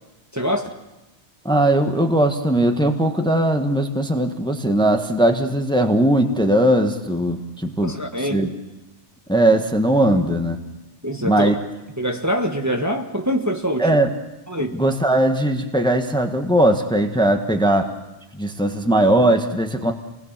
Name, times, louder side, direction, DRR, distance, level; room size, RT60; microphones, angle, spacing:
voice 1, 0.3-0.7 7.8-8.5 11.0-11.5 12.0-13.9 14.5-14.8, equal, 15° right, 3 dB, 1.4 m, -24 dB
voice 2, 1.4-8.0 8.3-8.5 9.3-10.6 11.2-11.5 13.8-14.1 14.7-17.9 18.3-19.9, right 1 dB, 5° left, 5 dB, 1.4 m, -19 dB
29.5 x 20.0 x 7.5 m, 1.1 s
omnidirectional pair, 1.2 m